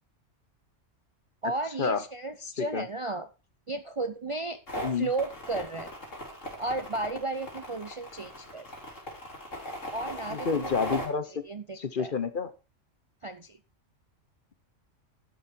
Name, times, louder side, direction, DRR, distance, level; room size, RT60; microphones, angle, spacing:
voice 1, 1.4-3.3 3.7-4.6 5.0-5.9 6.6-8.7 9.9-10.7 11.3-12.1 13.2-13.6, right 2 dB, 35° right, 9 dB, 0.5 m, -34 dB
sound 1, 4.7-11.0, equal, 80° left, 4.3 m, -38 dB
voice 2, 10.3-11.3 11.7-12.5, left 5 dB, 45° left, 13 dB, 0.9 m, -29 dB
12.0 x 7.2 x 4.3 m, 0.30 s
omnidirectional pair, 1.3 m